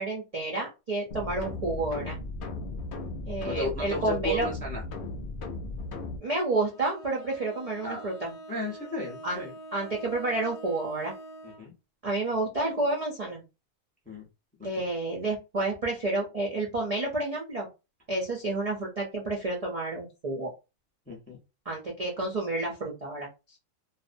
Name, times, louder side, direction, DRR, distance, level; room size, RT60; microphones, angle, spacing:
voice 1, 0.0-2.2 3.3-4.5 6.2-8.3 9.2-9.4 9.7-11.1 12.0-13.4 14.6-17.7 18.1-20.5 21.7-23.6, right 2 dB, 55° right, -3 dB, 0.4 m, -30 dB
sound 1, 1.1-6.2, left 2 dB, 70° left, 0.5 m, -36 dB
voice 2, 3.4-4.8 7.8-8.1 8.5-9.5 11.4-11.7 14.1-14.2 14.6-14.8 21.1-21.4, equal, 10° left, -1 dB, 0.4 m, -34 dB
Bowed string instrument, 6.7-11.7, right 1 dB, 90° left, 1.1 m, -45 dB
2.5 x 2.0 x 2.5 m, 0.27 s
omnidirectional pair, 1.5 m